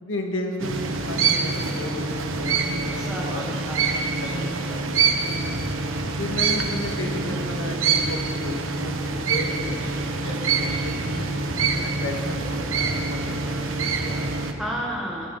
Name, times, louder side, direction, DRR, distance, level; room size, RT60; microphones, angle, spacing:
voice 1, 0.0-3.4 4.2-5.2 6.1-8.9 9.3-9.9 10.2-11.3 11.6-14.4, left 1 dB, 80° left, 1 dB, 2.1 m, -33 dB
sound 1, 0.6-14.5, right 4 dB, 85° right, 1.3 m, -26 dB
voice 2, 2.9-4.6 4.9-5.1 14.6-15.3, equal, 5° right, -5 dB, 1.5 m, -33 dB
Motorcycle / Engine starting, 5.1-14.2, right 1 dB, 45° right, 1.8 m, -38 dB
15.0 x 9.9 x 9.1 m, 2.7 s
head